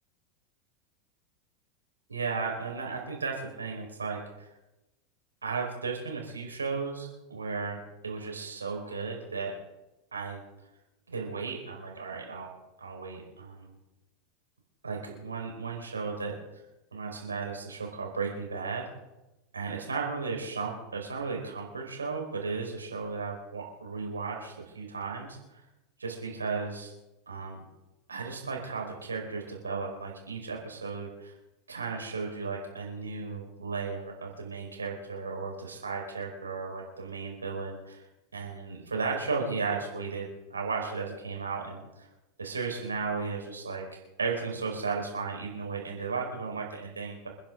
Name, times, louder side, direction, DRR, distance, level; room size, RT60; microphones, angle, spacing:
voice 1, 2.1-4.5 5.4-7.8 8.0-9.5 10.1-10.4 11.1-12.5 12.8-13.7 14.8-16.3 16.9-18.8 19.5-25.4 26.0-26.9 27.3-27.6 28.1-31.3 31.7-38.0 38.3-42.1 42.4-47.3, right 4 dB, 85° right, 1 dB, 4.8 m, -35 dB
29.0 x 10.5 x 3.9 m, 1.0 s
figure-of-eight pair, 85°, 0 cm